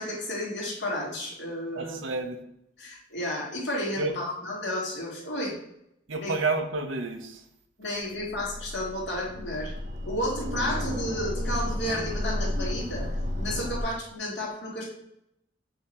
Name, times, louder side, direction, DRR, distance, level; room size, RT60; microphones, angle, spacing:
voice 1, 0.0-2.0 2.8-5.6 6.2-6.3 7.8-9.7 10.1-13.1 13.4-14.9, left 1 dB, 60° left, -4 dB, 2.3 m, -32 dB
voice 2, 1.7-2.4 4.0-4.1 6.1-7.4, right 3 dB, 85° right, 6 dB, 0.8 m, -30 dB
sound 1, 8.0-13.8, left 1 dB, 40° right, 0.7 m, -32 dB
7.7 x 2.9 x 4.3 m, 0.79 s
head